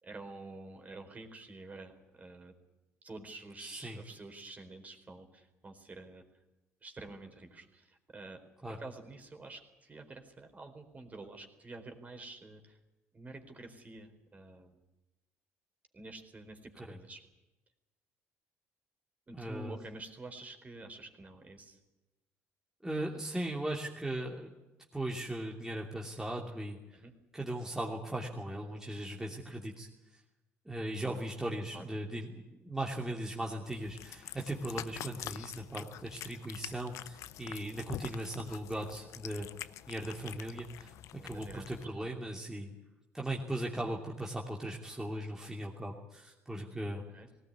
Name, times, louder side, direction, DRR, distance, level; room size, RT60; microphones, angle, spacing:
voice 1, 0.0-2.5 3.0-6.2 6.8-8.4 8.8-12.8 13.1-14.8 15.9-17.2 19.3-21.8 26.9-27.1 31.7-31.8 38.4-38.9 41.2-41.7 42.0-42.1 47.1-47.3, right 2 dB, 30° right, 5 dB, 4.3 m, -49 dB
voice 2, 3.6-4.0 8.6-8.8 16.9-17.0 19.3-19.7 22.8-24.5 24.9-26.8 27.3-29.9 30.6-39.5 39.9-40.9 41.2-42.7 43.1-47.0, right 1 dB, 10° right, -1 dB, 2.9 m, -38 dB
Cat, 33.6-41.8, left 13 dB, 70° left, 0.8 m, -46 dB
18.5 x 18.0 x 9.7 m, 1.0 s
supercardioid pair, 85°, 5 cm